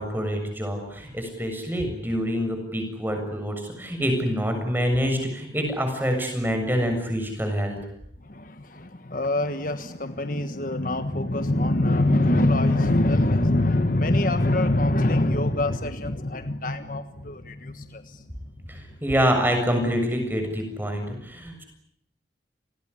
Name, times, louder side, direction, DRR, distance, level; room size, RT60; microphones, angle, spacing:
voice 1, 0.0-7.8 18.7-21.6, equal, 10° right, 5 dB, 7.1 m, -26 dB
voice 2, 8.2-18.3 18.6-19.0, left 1 dB, 45° left, 9 dB, 1.4 m, -24 dB
28.5 x 20.0 x 9.8 m, 0.73 s
head